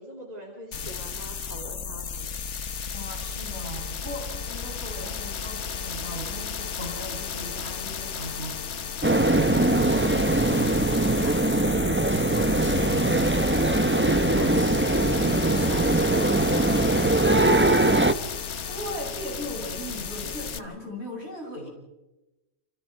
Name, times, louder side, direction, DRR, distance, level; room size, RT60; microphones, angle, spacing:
voice 1, 0.0-2.4 8.3-8.6 15.0-18.0, right 1 dB, 35° right, 0 dB, 3.4 m, -42 dB
sound 1, 0.7-20.6, left 6 dB, 80° left, 1.4 m, -34 dB
voice 2, 2.9-13.3 14.3-14.6 18.7-21.7, equal, 65° right, -1 dB, 8.1 m, -39 dB
sound 2, 9.0-18.1, right 2 dB, 10° right, 0.8 m, -22 dB
28.5 x 28.0 x 4.6 m, 1.0 s
omnidirectional pair, 1.2 m